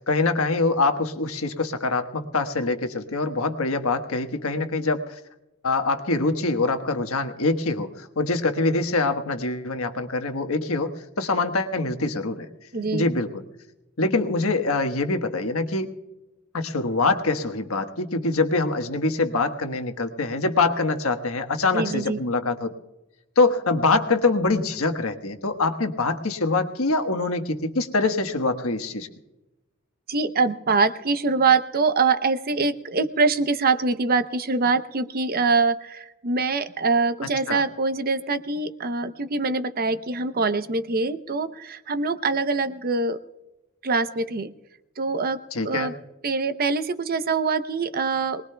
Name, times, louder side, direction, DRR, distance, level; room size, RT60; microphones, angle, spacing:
voice 1, 0.0-5.2 5.6-12.5 12.9-13.3 14.0-15.9 16.5-22.7 23.4-29.1 37.5-37.6 45.5-45.9, left 3 dB, 85° left, 7 dB, 1.3 m, -24 dB
voice 2, 12.7-13.1 21.7-22.2 30.1-43.2 43.8-44.5 45.0-45.9 46.2-48.4, right 4 dB, 45° right, 11 dB, 0.7 m, -24 dB
23.5 x 20.0 x 2.3 m, 0.99 s
head